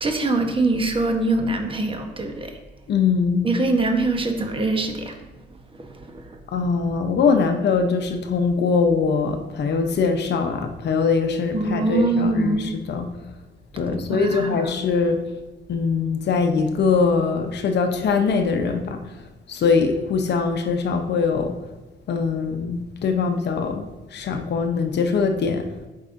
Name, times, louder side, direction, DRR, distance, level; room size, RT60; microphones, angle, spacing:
voice 1, 0.0-2.6 3.4-5.2 5.7-5.9 6.1-6.4 11.5-12.7 14.1-14.5, right 2 dB, 25° right, 4 dB, 1.0 m, -23 dB
voice 2, 2.9-3.4 6.5-13.1 13.7-15.2 15.7-19.1 19.5-21.6 22.1-25.7, left 5 dB, 60° left, 6 dB, 0.7 m, -22 dB
8.7 x 5.4 x 2.6 m, 1.1 s
cardioid pair, 90°, 20 cm